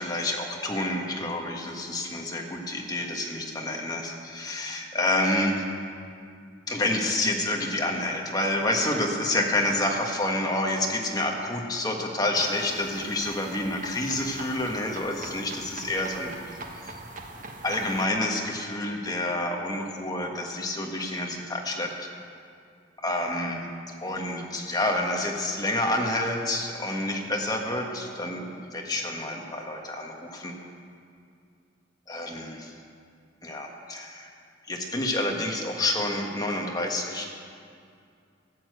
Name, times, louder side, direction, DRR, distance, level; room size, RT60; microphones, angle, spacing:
voice 1, 0.0-5.6 6.7-16.6 16.8-16.9 17.6-21.9 23.0-23.6 24.0-30.5 32.1-32.7 33.4-34.3 34.7-37.2, left 1 dB, 20° left, 1 dB, 1.5 m, -28 dB
sound 1, 12.3-18.1, right 2 dB, 45° right, 1.1 m, -42 dB
14.0 x 8.8 x 8.0 m, 2.4 s
head